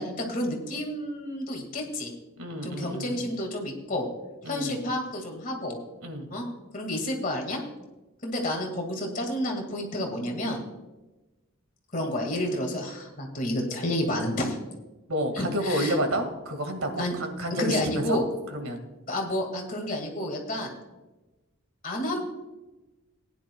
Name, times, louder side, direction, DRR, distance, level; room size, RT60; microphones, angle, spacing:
voice 1, 0.0-2.1 2.6-4.1 4.4-5.8 6.3-6.5 6.7-7.6 8.2-10.6 11.9-14.6 15.4-16.0 17.0-17.1 17.6-18.3 19.1-20.7 21.8-22.2, left 1 dB, 40° left, 2 dB, 2.0 m, -30 dB
voice 2, 2.4-3.2 4.4-4.8 6.0-6.3 15.1-18.2 18.5-18.8, equal, 85° right, 6 dB, 1.9 m, -30 dB
18.0 x 10.5 x 2.3 m, 1.1 s
head